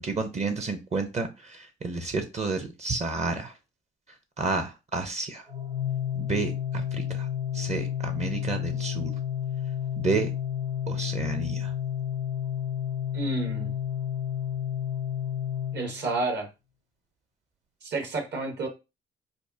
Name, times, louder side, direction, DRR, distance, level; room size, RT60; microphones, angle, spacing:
voice 1, 0.0-3.5 4.4-5.4 6.2-7.3 7.5-9.1 10.0-10.3 10.9-11.7, right 3 dB, 35° right, 0.7 m, -30 dB
Organ, 5.5-16.4, left 10 dB, 85° right, 2.1 m, -31 dB
voice 2, 13.1-13.7 15.7-16.5 17.8-18.7, right 3 dB, 60° right, 1.4 m, -30 dB
5.2 x 2.0 x 2.7 m
cardioid pair, 90°, 20 cm